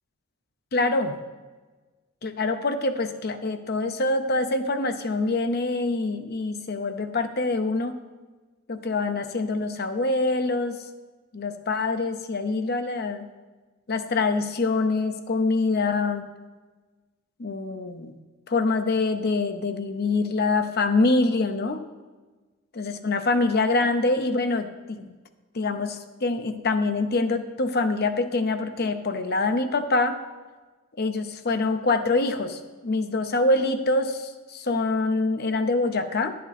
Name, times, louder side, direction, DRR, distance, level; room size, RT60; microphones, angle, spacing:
voice 1, 0.7-1.2 2.2-8.0 8.7-10.8 11.3-13.3 13.9-16.3 17.4-18.1 18.5-21.8 22.7-25.1 25.5-30.2 31.0-36.4, left 3 dB, 45° left, 8 dB, 0.6 m, -25 dB
10.5 x 8.5 x 4.2 m, 1.3 s
head